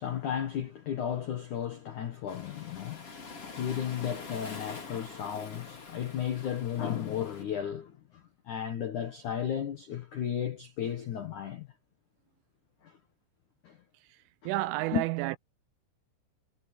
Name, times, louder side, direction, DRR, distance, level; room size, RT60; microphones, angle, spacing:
voice 1, 0.0-11.7 12.8-12.9 13.6-13.8 14.4-14.5 14.9-15.0, left 9 dB, 80° left, 1.7 m, -34 dB
Waves surf, 2.3-7.4, left 4 dB, 30° left, 4.5 m, -45 dB
voice 2, 14.5-15.4, right 18 dB, 80° right, 3.0 m, -30 dB
omnidirectional pair, 5.9 m